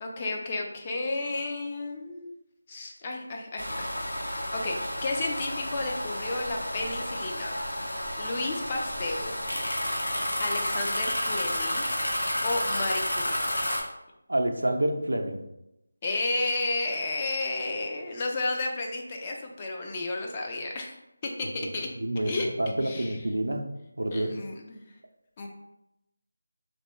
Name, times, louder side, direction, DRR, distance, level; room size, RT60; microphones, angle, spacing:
voice 1, 0.0-2.4 2.7-3.9 4.2-7.6 8.2-9.3 10.4-11.9 12.4-13.4 16.0-21.0 21.2-21.9 22.2-22.5 22.8-23.2 24.1-24.8 25.4-25.5, left 2 dB, 25° left, 1 dB, 0.4 m, -32 dB
sound 1, 3.6-13.8, equal, 80° left, 0.9 m, -31 dB
voice 2, 14.3-15.4 22.0-22.3 22.6-23.6 24.0-24.3, right 1 dB, 85° right, 4 dB, 0.4 m, -27 dB
3.0 x 2.1 x 3.0 m, 0.88 s
figure-of-eight pair, 165°, 0 cm